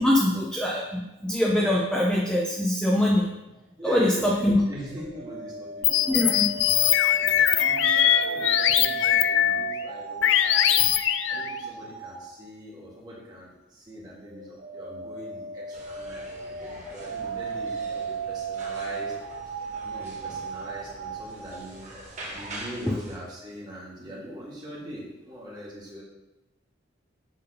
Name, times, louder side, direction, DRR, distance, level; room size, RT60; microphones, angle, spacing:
voice 1, 0.0-3.3 3.8-4.6 6.1-6.5 22.9-23.0, left 1 dB, 5° left, -4 dB, 0.6 m, -23 dB
voice 2, 3.8-6.3 6.6-6.7 7.1-19.1 19.5-26.0, equal, 20° right, -5 dB, 1.7 m, -42 dB
sound 1, 4.9-12.2 14.3-21.6, right 5 dB, 65° right, 1.1 m, -35 dB
sound 2, 5.8-9.8 10.2-11.5, left 11 dB, 75° left, 0.3 m, -22 dB
sound 3, 15.7-23.2, right 1 dB, 35° right, 1.1 m, -44 dB
6.7 x 3.5 x 5.3 m, 0.97 s
head